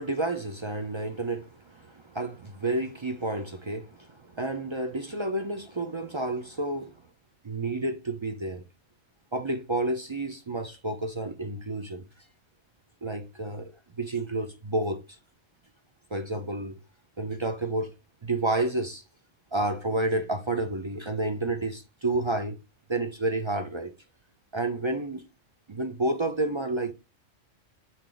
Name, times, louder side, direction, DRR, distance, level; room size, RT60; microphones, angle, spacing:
voice 1, 0.0-6.9 7.4-8.6 9.3-12.0 13.0-13.7 14.0-15.2 16.1-16.8 17.2-17.9 18.2-19.0 19.5-22.6 22.9-23.9 24.5-25.2 25.7-26.9, right 2 dB, 45° right, 0.3 m, -30 dB
6.2 x 3.9 x 3.8 m
omnidirectional pair, 1.3 m